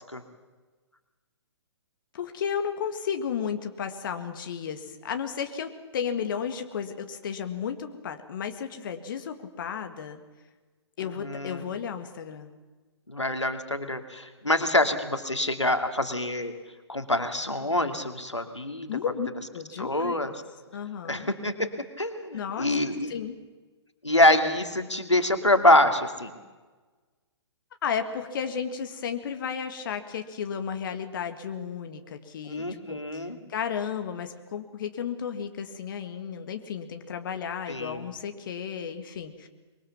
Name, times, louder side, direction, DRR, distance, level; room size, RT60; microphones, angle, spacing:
voice 1, 2.1-10.2 11.0-12.5 18.9-20.2 20.7-21.3 22.3-23.4 27.8-33.2 33.5-39.5, left 7 dB, 45° left, 7 dB, 2.0 m, -33 dB
voice 2, 11.0-11.7 13.1-16.5 16.9-18.9 19.8-20.3 21.1-21.7 22.0-23.1 24.0-26.3 32.5-33.4 37.7-38.0, left 1 dB, 90° left, 7 dB, 2.5 m, -25 dB
24.5 x 23.5 x 7.3 m, 1.3 s
figure-of-eight pair, 125°, 15 cm